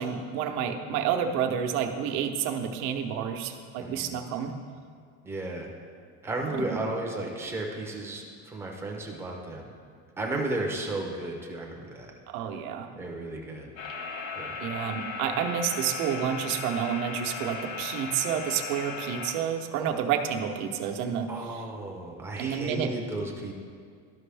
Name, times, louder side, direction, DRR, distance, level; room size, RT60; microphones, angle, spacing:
voice 1, 0.0-4.5 12.3-12.9 14.6-21.6 22.4-22.9, right 8 dB, 90° right, 5 dB, 0.9 m, -29 dB
voice 2, 3.8-4.1 5.2-5.7 6.2-9.7 10.2-12.1 13.0-13.7 14.4-14.5 21.3-23.5, right 2 dB, 5° right, 0 dB, 0.3 m, -34 dB
sound 1, 13.8-19.3, left 5 dB, 75° left, 1.2 m, -37 dB
12.5 x 5.3 x 3.3 m, 2.1 s
cardioid pair, 165°, 42 cm